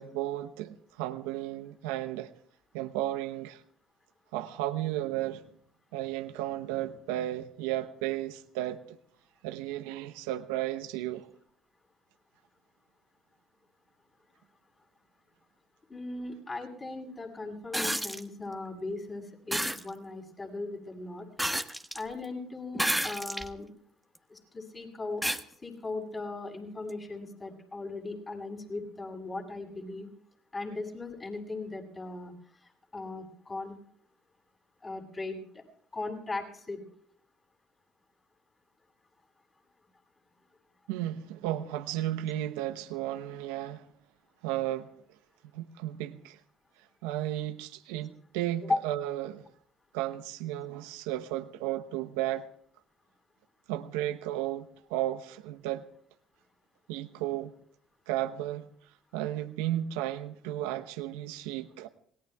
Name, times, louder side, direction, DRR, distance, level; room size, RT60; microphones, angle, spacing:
voice 1, 0.0-2.3 2.7-3.6 4.3-5.5 5.9-9.0 9.4-11.3 40.9-43.9 44.4-44.9 45.5-46.4 47.0-49.5 49.9-52.5 53.7-55.9 56.9-57.5 58.1-58.7 59.1-61.9, right 14 dB, 80° right, 0.9 m, -34 dB
voice 2, 15.9-21.3 21.9-23.7 24.3-25.2 25.6-30.1 30.5-32.3 32.9-33.8 34.8-35.4 35.9-36.8 48.6-48.8, left 3 dB, 30° left, 7.3 m, -37 dB
sound 1, 17.7-18.2 19.5-19.8 21.4-22.0 22.7-23.5 24.1-24.2 25.2-25.4 26.9-27.0, right 1 dB, ahead, 1.4 m, -30 dB
27.0 x 19.5 x 2.4 m
hypercardioid pair, 65°, 0 cm